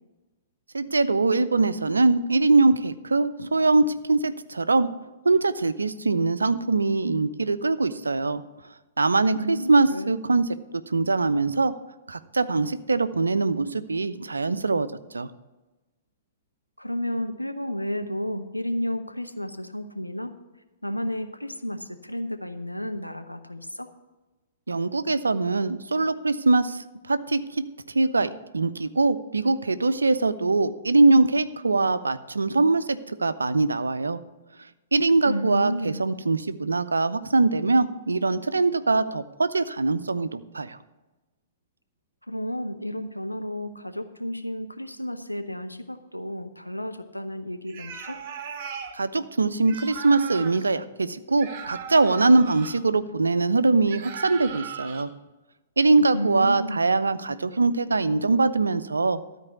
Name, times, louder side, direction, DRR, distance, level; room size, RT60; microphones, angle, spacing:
voice 1, 0.7-4.9 5.2-8.4 9.0-10.5 10.9-11.7 12.1-14.9 15.1-15.3 24.7-27.6 27.9-34.2 34.9-40.8 48.9-55.1 55.8-59.2, right 3 dB, 75° right, 13 dB, 0.5 m, -22 dB
voice 2, 9.3-10.2 16.8-20.3 20.8-23.9 35.2-36.0 42.3-48.2 56.1-56.8, equal, 90° left, 7 dB, 0.8 m, -32 dB
sound 1, 47.7-49.0 49.6-50.7 51.4-52.8 53.9-55.0, right 7 dB, 35° right, 1.1 m, -38 dB
13.0 x 4.6 x 8.0 m, 1.1 s
figure-of-eight pair, 110°, 0 cm